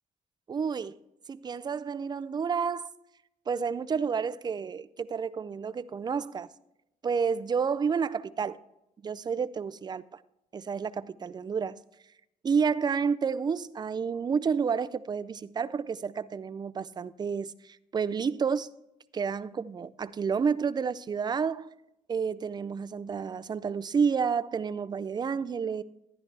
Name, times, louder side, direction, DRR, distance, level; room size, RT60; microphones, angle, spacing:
voice 1, 0.5-1.0 1.3-2.9 3.5-6.5 7.0-8.6 9.0-10.1 10.5-11.8 12.4-18.7 19.1-21.7 22.1-25.8, right 6 dB, 30° right, 0.4 m, -30 dB
13.5 x 10.5 x 3.3 m
cardioid pair, 120°, 14 cm